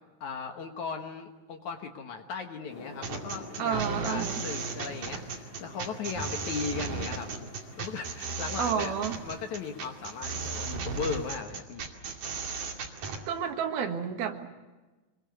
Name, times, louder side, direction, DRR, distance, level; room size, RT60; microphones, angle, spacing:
voice 1, 0.2-7.3 7.8-8.9 9.2-11.8, left 5 dB, 60° left, 5 dB, 2.2 m, -37 dB
rainy afternoon, 2.7-11.4, left 3 dB, 35° left, 2.4 m, -49 dB
sound 1, 3.0-13.2, right 5 dB, 55° right, 3.7 m, -35 dB
voice 2, 3.6-4.4 8.6-9.2 13.3-14.5, right 7 dB, 70° right, 5 dB, 3.4 m, -30 dB
25.0 x 22.0 x 8.1 m, 1.2 s
omnidirectional pair, 4.8 m